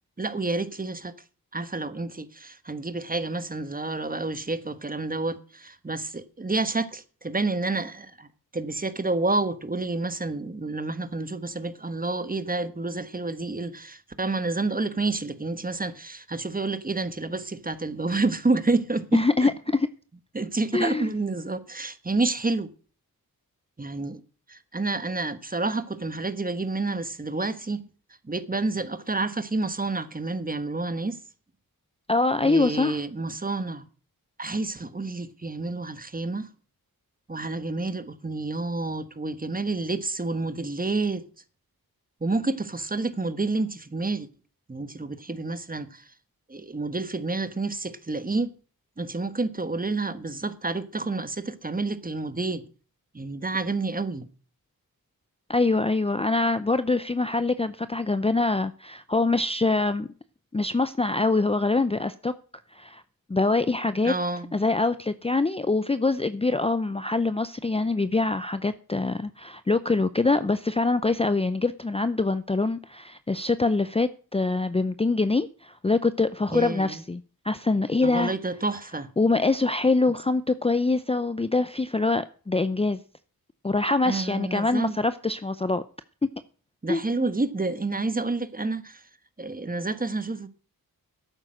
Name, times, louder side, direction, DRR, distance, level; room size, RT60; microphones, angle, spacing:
voice 1, 0.2-1.1 1.5-8.3 8.5-19.5 20.3-22.7 23.8-24.2 24.5-27.8 28.2-31.2 32.4-33.8 34.4-36.5 37.3-41.2 42.2-44.3 44.7-46.1 46.5-48.5 49.0-52.7 53.1-54.3 64.0-64.6 76.5-77.0 78.0-79.1 84.0-85.0 86.8-89.0 89.4-90.5, right 3 dB, 25° right, 1.3 m, -29 dB
voice 2, 19.1-19.9 20.7-21.1 32.1-33.0 55.5-60.1 60.5-62.3 62.7-63.0 63.3-64.1 64.5-78.3 79.2-83.0 83.6-85.8 86.9-87.0, left 3 dB, 15° left, 0.6 m, -24 dB
12.0 x 8.9 x 6.4 m
wide cardioid pair, 90°, 37 cm